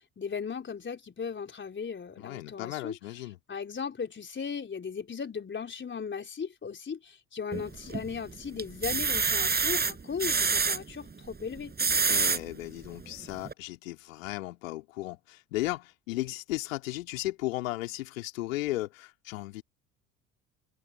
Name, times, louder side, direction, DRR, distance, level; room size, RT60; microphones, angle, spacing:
voice 1, 0.0-3.0 3.5-11.7, left 6 dB, 25° left, 4.1 m, -37 dB
voice 2, 2.2-3.4 12.1-19.6, left 18 dB, 70° left, 2.9 m, -35 dB
sound 1, 7.5-8.1 8.6-10.8 11.6-12.4 13.0-13.1 13.4-13.5, right 5 dB, 25° right, 5.5 m, -26 dB
figure-of-eight pair, 60°, 41 cm